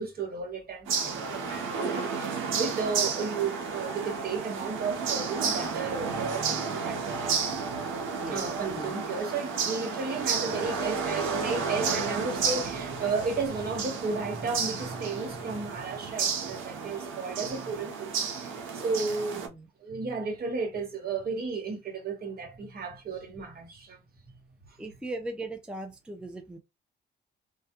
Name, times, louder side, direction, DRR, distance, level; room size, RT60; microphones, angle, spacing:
voice 1, 0.0-7.4 8.3-19.4 19.8-24.0, right 4 dB, 50° right, 1.0 m, -33 dB
sound 1, 0.9-19.5, right 5 dB, 85° right, 0.7 m, -32 dB
voice 2, 1.0-1.6 8.1-8.9 19.3-19.7 24.8-26.6, right 2 dB, 5° right, 0.4 m, -40 dB
2.2 x 2.2 x 2.8 m
cardioid pair, 90°, 20 cm